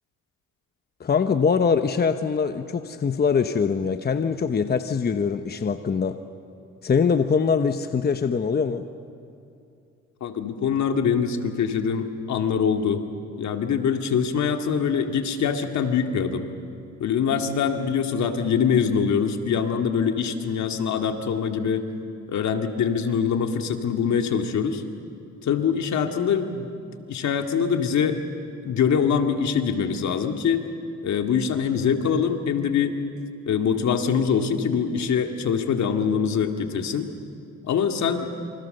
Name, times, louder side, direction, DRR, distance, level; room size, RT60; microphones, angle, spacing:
voice 1, 1.0-6.2 6.8-8.9, left 6 dB, 30° left, 9 dB, 1.0 m, -23 dB
voice 2, 10.2-13.0 13.4-16.4 17.0-21.9 22.3-24.8 25.4-26.7 27.1-28.2 28.6-30.6 31.0-33.0 33.5-37.1 37.6-38.3, left 7 dB, 65° left, 5 dB, 2.2 m, -24 dB
28.0 x 25.5 x 6.7 m, 2.6 s
cardioid pair, 90°, 30 cm